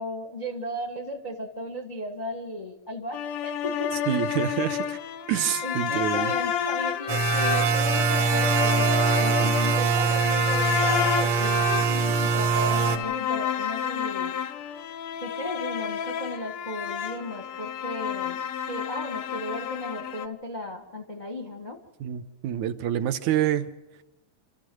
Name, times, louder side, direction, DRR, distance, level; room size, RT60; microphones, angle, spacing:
voice 1, 0.0-3.9 5.6-14.4 15.2-18.4 18.7-21.8, equal, 35° left, 3 dB, 0.7 m, -35 dB
sound 1, 3.1-20.3, left 9 dB, 80° left, 1.2 m, -30 dB
voice 2, 4.1-5.0 5.3-6.3 9.4-9.5 22.0-23.7, right 11 dB, 75° right, 9 dB, 2.2 m, -27 dB
sound 2, 7.1-13.0, right 5 dB, 60° right, 2.7 m, -23 dB
27.5 x 13.5 x 7.7 m, 1.0 s
omnidirectional pair, 3.6 m